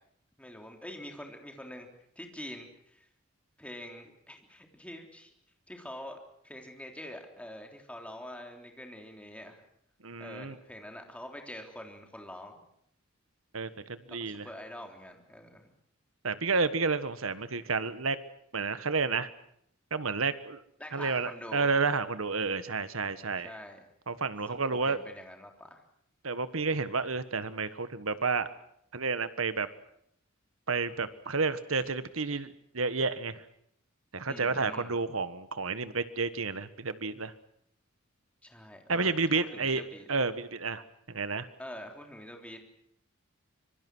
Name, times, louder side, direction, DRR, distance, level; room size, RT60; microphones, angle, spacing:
voice 1, 0.4-1.9 2.2-3.1 3.6-5.3 5.7-9.6 10.2-12.6 14.2-15.7 20.8-21.7 23.4-23.8 24.7-25.8 34.3-35.0 38.4-40.1 41.6-42.6, left 1 dB, 5° left, 3 dB, 3.5 m, -45 dB
voice 2, 10.0-10.6 13.5-14.5 16.2-18.2 18.5-19.3 19.9-20.6 20.9-23.5 24.1-25.0 26.2-28.5 28.9-29.7 30.7-33.4 34.1-37.3 38.9-39.8 40.1-41.5, right 4 dB, 75° right, 13 dB, 1.5 m, -30 dB
25.5 x 23.0 x 6.3 m, 0.71 s
head